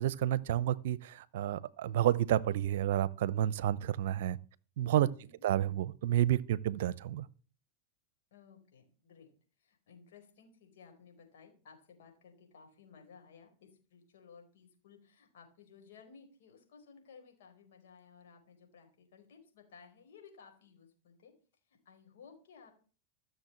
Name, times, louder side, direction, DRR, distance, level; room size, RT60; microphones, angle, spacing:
voice 1, 0.0-4.4 4.8-5.1 5.4-7.3, right 12 dB, 65° right, 0.7 m, -30 dB
voice 2, 5.1-5.4 8.3-9.3 9.6-21.3 21.7-22.7, left 6 dB, 70° left, 4.5 m, -58 dB
14.5 x 7.0 x 7.2 m
hypercardioid pair, 105°, 0 cm